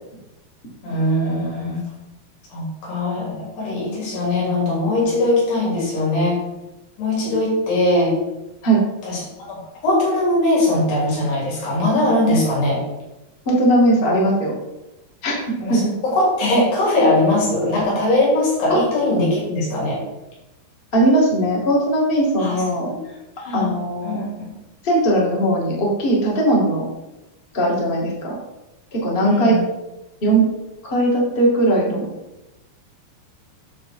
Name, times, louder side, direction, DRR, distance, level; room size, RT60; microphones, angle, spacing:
voice 1, 0.8-1.8 2.5-6.4 7.0-8.1 9.0-9.6 9.8-12.8 15.6-20.0 22.4-22.6 23.4-23.7 24.0-24.5 29.2-29.6, left 1 dB, 80° left, -4 dB, 5.2 m, -20 dB
voice 2, 13.5-14.5 15.2-15.4 15.7-15.8 18.7-18.8 20.9-22.9 23.5-24.2 24.8-26.8 27.5-28.4 28.9-29.6 30.2-30.5 30.8-32.1, right 1 dB, 20° left, -4 dB, 1.7 m, -18 dB
9.3 x 6.7 x 4.5 m, 0.98 s
omnidirectional pair, 4.6 m